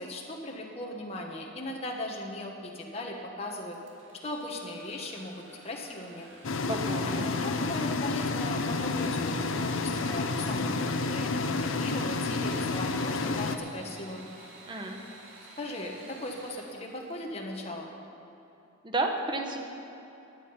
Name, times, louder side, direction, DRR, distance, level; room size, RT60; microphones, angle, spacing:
voice 1, 0.0-3.8 4.2-6.3 7.0-14.3 15.6-17.9, left 1 dB, 30° left, -1 dB, 1.2 m, -38 dB
Engine / Sawing, 3.7-17.4, right 2 dB, 70° right, 2.6 m, -51 dB
sound 1, 6.4-13.6, left 3 dB, 75° left, 0.7 m, -30 dB
voice 2, 6.7-7.3 14.7-15.0 18.8-19.6, right 2 dB, 25° right, 3 dB, 1.1 m, -31 dB
15.5 x 10.5 x 5.6 m, 3.0 s
head